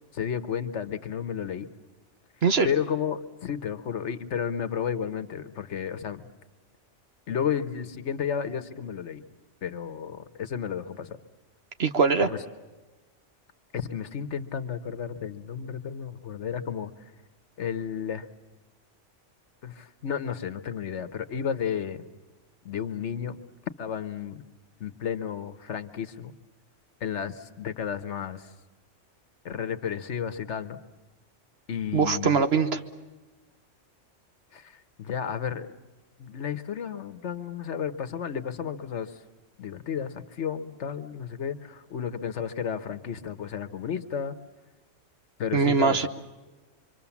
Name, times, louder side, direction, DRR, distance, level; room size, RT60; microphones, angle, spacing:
voice 1, 0.1-1.7 2.6-6.3 7.3-9.2 9.6-11.2 12.2-12.4 13.7-16.9 17.6-18.3 19.6-22.0 22.6-23.4 23.8-24.4 24.8-26.3 27.0-28.5 29.4-30.8 31.7-32.5 34.5-35.7 36.2-39.1 39.6-44.4 45.4-46.1, left 8 dB, 70° left, 11 dB, 1.3 m, -32 dB
voice 2, 11.8-12.3 31.9-32.8 45.5-46.1, right 5 dB, 60° right, 8 dB, 1.3 m, -22 dB
26.0 x 24.5 x 7.1 m, 1.2 s
omnidirectional pair, 1.3 m